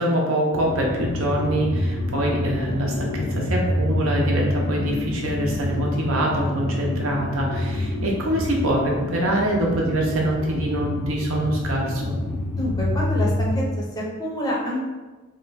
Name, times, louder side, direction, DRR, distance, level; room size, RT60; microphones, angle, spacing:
voice 1, 0.0-12.1, right 1 dB, 80° right, -1 dB, 0.7 m, -24 dB
sound 1, 0.5-13.7, left 1 dB, 80° left, 0.4 m, -27 dB
voice 2, 12.5-14.8, equal, 20° left, -3 dB, 0.5 m, -27 dB
2.8 x 2.2 x 4.0 m, 1.2 s
head